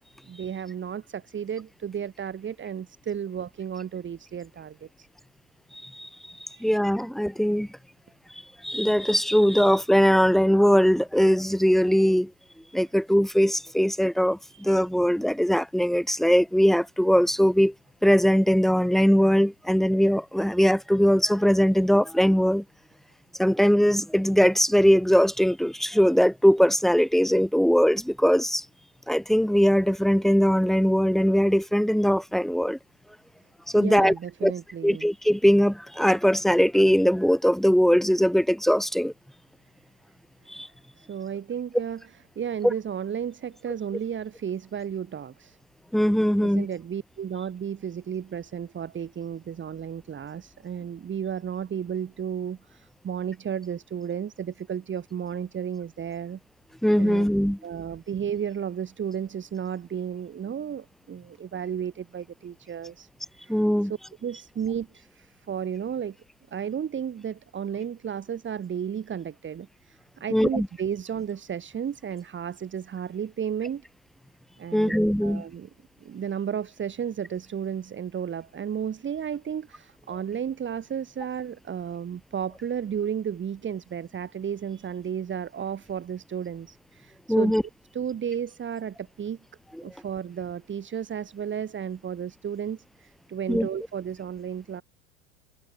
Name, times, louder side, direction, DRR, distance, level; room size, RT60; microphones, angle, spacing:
voice 1, 0.3-5.1 6.5-6.8 14.5-14.7 33.7-35.1 41.0-42.0 42.4-45.6 46.4-56.4 57.0-57.3 57.6-63.1 63.4-63.6 63.9-66.2 66.5-73.8 74.6-75.7 76.0-87.5 87.9-89.4 89.8-94.8, right 8 dB, 30° right, 6.0 m, -33 dB
voice 2, 6.6-7.7 8.6-12.3 12.7-17.7 18.0-22.6 23.4-28.6 29.1-32.8 33.7-34.1 34.4-34.5 34.8-39.1 40.5-40.7 45.9-46.7 56.8-57.6 63.5-63.9 70.3-70.7 74.7-75.4 87.3-87.6 93.5-93.7, equal, ahead, 4.5 m, -21 dB
hypercardioid pair, 90°, 39 cm